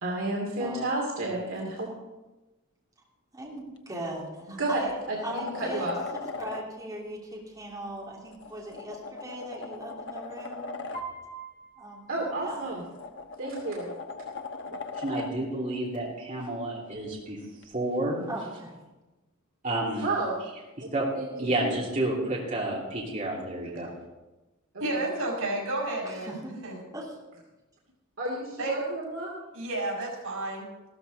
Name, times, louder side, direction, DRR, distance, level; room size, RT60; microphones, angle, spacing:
voice 1, 0.0-1.9 4.5-5.9 12.1-12.8 13.4-13.9 14.7-14.8 20.0-20.4 20.8-21.6 24.9-25.0 28.2-29.3, right 2 dB, 65° right, -3 dB, 2.6 m, -31 dB
voice 2, 3.3-4.9 5.2-5.9 6.4-10.7 11.8-12.1 12.4-12.7 18.3-18.7 25.9-26.6 26.9-27.1, right 1 dB, 15° right, -5 dB, 2.9 m, -39 dB
sound 1, 3.8-3.9 4.4-6.6 8.3-11.0 12.5-15.3 17.6-17.7, left 4 dB, 60° left, 1.0 m, -39 dB
Piano, 10.9-13.0, right 4 dB, 40° left, 2.8 m, -43 dB
voice 3, 15.0-17.4 17.7-18.2 19.6-20.1 20.9-21.1 21.4-23.9, right 1 dB, 35° right, -4 dB, 2.8 m, -30 dB
voice 4, 24.8-26.4 26.6-26.8 28.6-28.8 29.5-30.7, right 1 dB, 90° right, 0 dB, 5.2 m, -31 dB
14.5 x 13.5 x 4.0 m, 1.1 s
head